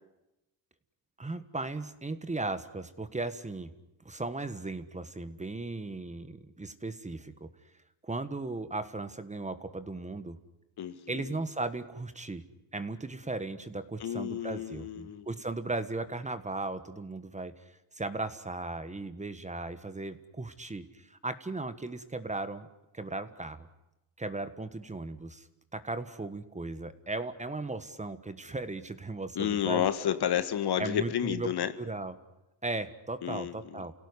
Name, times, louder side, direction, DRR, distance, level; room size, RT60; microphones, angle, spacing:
voice 1, 1.2-3.7 4.0-7.5 8.0-10.4 11.1-12.4 12.7-17.5 17.9-22.7 22.9-23.7 24.2-25.5 25.7-29.8 30.8-31.5 31.8-32.1 32.6-33.9, right 2 dB, 15° right, 11 dB, 1.5 m, -37 dB
voice 2, 10.8-11.4 14.0-15.3 29.4-31.7 33.2-33.8, left 9 dB, 55° left, 11 dB, 1.7 m, -31 dB
29.0 x 17.5 x 9.8 m, 0.94 s
cardioid pair, 110°, 47 cm